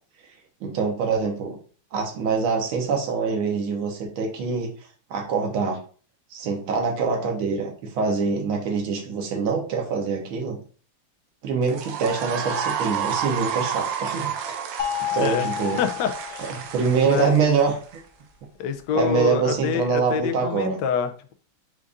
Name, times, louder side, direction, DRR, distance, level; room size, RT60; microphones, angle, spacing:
voice 1, 0.6-1.6 1.9-4.7 5.1-5.8 6.3-10.6 11.4-14.6 15.1-15.8 16.6-17.8 19.0-20.8, right 5 dB, 90° right, 1 dB, 1.8 m, -24 dB
sound 1, 11.6-18.0, right 7 dB, 75° right, 1.2 m, -30 dB
sound 2, 14.8-17.0, left 12 dB, 85° left, 2.0 m, -30 dB
voice 2, 15.8-16.5 17.0-17.3 18.6-21.3, left 7 dB, 70° left, 7 dB, 1.1 m, -26 dB
5.1 x 2.5 x 3.5 m, 0.41 s
omnidirectional pair, 2.2 m